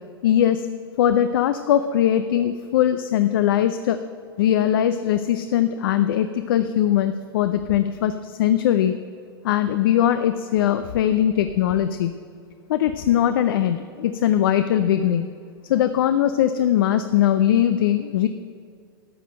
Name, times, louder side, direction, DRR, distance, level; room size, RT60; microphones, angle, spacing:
voice 1, 0.2-0.6 1.0-4.0 4.4-8.9 9.4-12.1 12.7-15.3 15.7-18.3, left 10 dB, 65° left, 10 dB, 0.5 m, -20 dB
13.0 x 6.8 x 7.5 m, 2.3 s
hypercardioid pair, 100°, 13 cm